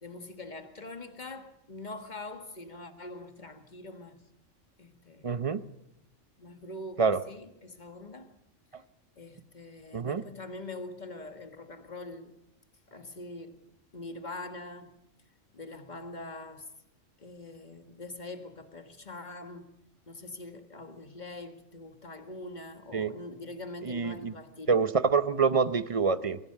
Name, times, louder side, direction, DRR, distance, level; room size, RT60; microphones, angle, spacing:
voice 1, 0.0-4.2 4.8-5.3 6.4-8.3 8.7-8.8 9.2-12.3 12.9-13.6 13.9-14.9 15.5-16.7 17.2-19.7 20.1-24.8, left 2 dB, 35° left, 1.9 m, -43 dB
voice 2, 5.2-5.6 7.0-7.2 9.9-10.2 22.9-23.1 23.8-24.3 24.7-26.4, right 5 dB, 30° right, 0.7 m, -26 dB
23.5 x 16.5 x 6.8 m
omnidirectional pair, 1.3 m